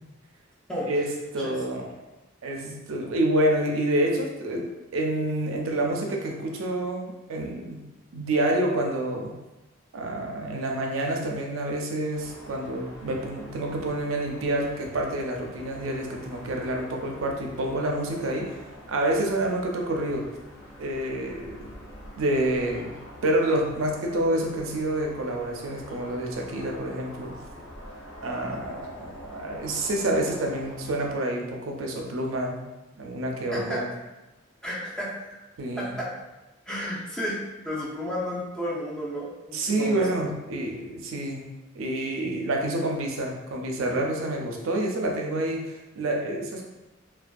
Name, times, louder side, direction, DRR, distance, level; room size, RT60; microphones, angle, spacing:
voice 1, 0.9-1.9 2.4-4.7 4.9-7.8 8.1-9.3 9.9-18.6 18.9-20.3 20.8-21.7 22.2-22.9 23.2-27.3 28.2-32.6 33.0-33.9 35.6-36.0 39.5-41.4 41.7-46.6, right 1 dB, 80° right, 1 dB, 0.4 m, -28 dB
sound 1, 12.1-31.1, left 1 dB, 85° left, 0.6 m, -45 dB
voice 2, 33.5-33.8 34.6-35.4 35.8-36.1 36.7-37.4 37.6-40.1, equal, 5° left, -6 dB, 0.5 m, -32 dB
2.5 x 2.2 x 2.3 m, 1.1 s
head